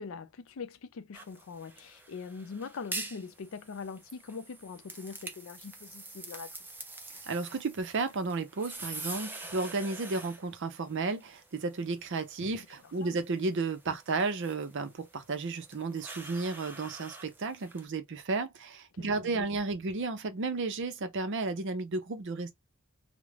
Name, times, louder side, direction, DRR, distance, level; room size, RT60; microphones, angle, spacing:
voice 1, 0.0-6.6 13.0-13.2 13.9-14.0 18.9-19.5, left 5 dB, 70° left, 0.4 m, -42 dB
sound 1, 1.1-17.8, right 2 dB, 10° right, 0.4 m, -46 dB
voice 2, 7.3-22.5, right 3 dB, 60° right, 0.6 m, -33 dB
2.4 x 2.1 x 3.1 m
head